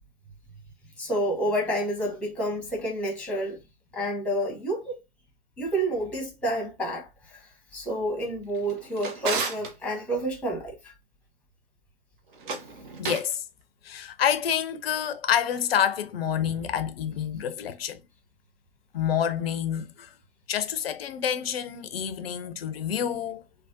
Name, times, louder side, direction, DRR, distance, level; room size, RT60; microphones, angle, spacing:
voice 1, 1.0-3.6 3.9-5.0 5.6-7.4 7.7-10.9, right 1 dB, 5° left, 0.9 m, -29 dB
Drawer open or close, 8.5-9.7 12.3-13.4, right 4 dB, 50° right, 0.7 m, -33 dB
voice 2, 13.0-13.4 13.8-18.0 18.9-20.1 20.5-23.4, left 9 dB, 60° left, 0.5 m, -28 dB
3.3 x 2.1 x 2.6 m
figure-of-eight pair, 105°, 33 cm